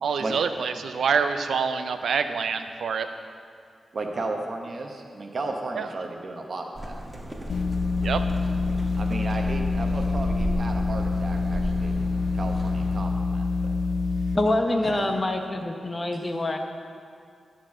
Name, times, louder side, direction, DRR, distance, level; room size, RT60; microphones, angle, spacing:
voice 1, 0.0-3.1 5.8-5.9 8.0-8.2, right 6 dB, 85° right, 9 dB, 0.5 m, -26 dB
voice 2, 3.9-7.6 9.0-11.9 12.3-13.8 14.3-14.4 14.8-15.3 16.1-16.2, right 2 dB, 55° right, 3 dB, 1.0 m, -34 dB
sound 1, 6.7-13.0, right 1 dB, 15° right, 1.4 m, -35 dB
sound 2, 7.5-14.4, left 3 dB, 80° left, 0.5 m, -26 dB
voice 3, 14.3-16.6, left 2 dB, 30° left, 5 dB, 0.8 m, -25 dB
13.5 x 4.6 x 6.3 m, 2.2 s
cardioid pair, 75°, 0 cm